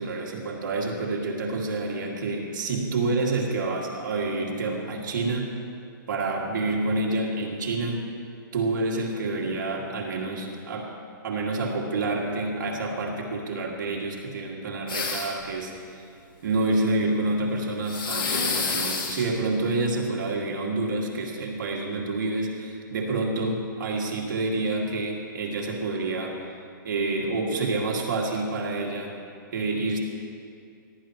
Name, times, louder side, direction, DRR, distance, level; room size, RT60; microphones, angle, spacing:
voice 1, 0.0-5.5 6.1-8.1 8.5-11.0 11.2-16.0 16.4-26.5 26.8-29.2 29.5-30.0, right 2 dB, 65° right, -1 dB, 2.2 m, -28 dB
sound 1, 14.9-15.5 17.9-19.3, left 4 dB, 85° left, 2.4 m, -28 dB
17.5 x 10.5 x 3.0 m, 2.4 s
hypercardioid pair, 150°, 11 cm